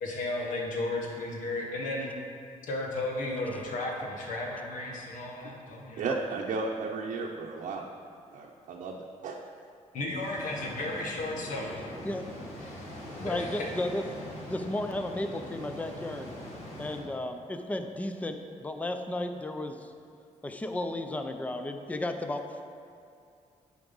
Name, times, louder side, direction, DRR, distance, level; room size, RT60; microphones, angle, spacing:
voice 1, 0.0-2.1 2.7-6.0 9.9-11.9 12.6-12.8 13.2-13.7, left 2 dB, 90° left, -1 dB, 1.6 m, -34 dB
voice 2, 6.0-7.8 8.3-9.4, right 4 dB, 75° right, -1 dB, 0.7 m, -34 dB
sound 1, 10.2-17.0, left 1 dB, 55° left, 2.3 m, -43 dB
voice 3, 13.1-14.0 14.5-16.3 16.8-19.9 20.4-22.4, left 1 dB, 10° left, 6 dB, 0.5 m, -34 dB
10.5 x 4.8 x 5.4 m, 2.5 s
cardioid pair, 125°, 13 cm